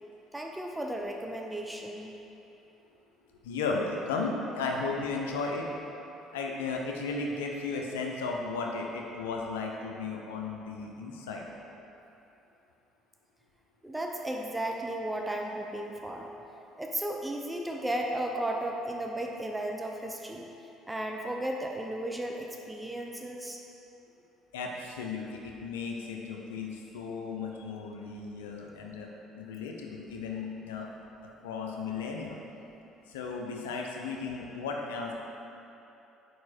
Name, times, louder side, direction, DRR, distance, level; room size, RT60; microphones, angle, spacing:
voice 1, 0.3-2.2 13.8-16.3 16.8-20.5 20.9-23.6, right 1 dB, 10° right, 1 dB, 0.6 m, -34 dB
voice 2, 3.4-5.7 6.3-11.4 24.5-29.1 29.3-30.9 31.4-32.4 33.1-35.1, left 4 dB, 85° left, 0 dB, 0.5 m, -35 dB
4.8 x 4.7 x 4.3 m, 2.9 s
hypercardioid pair, 60°, 0 cm